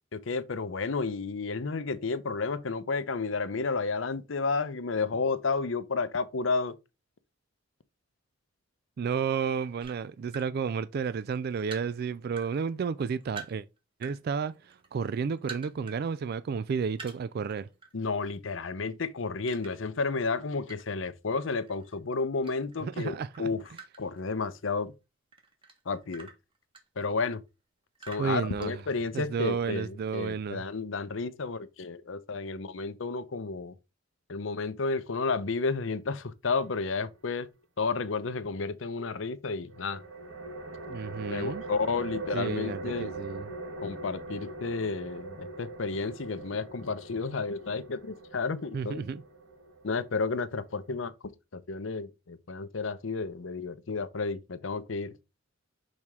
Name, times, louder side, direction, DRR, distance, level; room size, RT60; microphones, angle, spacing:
voice 1, 0.1-6.8 17.9-23.6 24.0-24.9 25.9-26.3 27.0-27.4 28.1-33.7 34.3-37.5 37.8-40.0 41.3-43.1 43.8-49.0 49.8-51.1 51.5-55.1, left 4 dB, 70° left, 0.7 m, -32 dB
voice 2, 9.0-13.7 14.0-17.7 22.8-23.5 28.2-28.8 29.1-30.6 40.9-41.6 42.3-43.5 48.7-49.2, right 6 dB, 50° right, 0.3 m, -32 dB
sound 1, 9.8-10.5 11.0-12.5 12.8-14.2 14.5-16.0 16.3-16.4 16.9-17.9 18.2-18.5 19.5-21.1 21.5-22.9 23.2-24.8 25.3-27.4 28.0-29.3, right 5 dB, 25° right, 1.5 m, -47 dB
sound 2, 39.7-51.1, right 2 dB, 70° right, 1.3 m, -42 dB
6.4 x 4.3 x 3.5 m
head